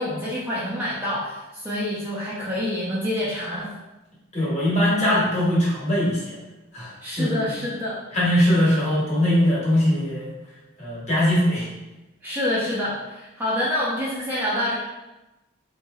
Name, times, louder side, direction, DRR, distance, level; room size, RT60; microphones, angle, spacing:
voice 1, 0.0-3.7 7.0-8.0 12.2-14.8, left 1 dB, 10° right, -7 dB, 0.4 m, -27 dB
voice 2, 4.3-6.4 6.7-7.5 8.1-10.3 10.8-11.7, equal, 35° left, -7 dB, 1.1 m, -21 dB
3.7 x 3.0 x 2.3 m, 1.0 s
head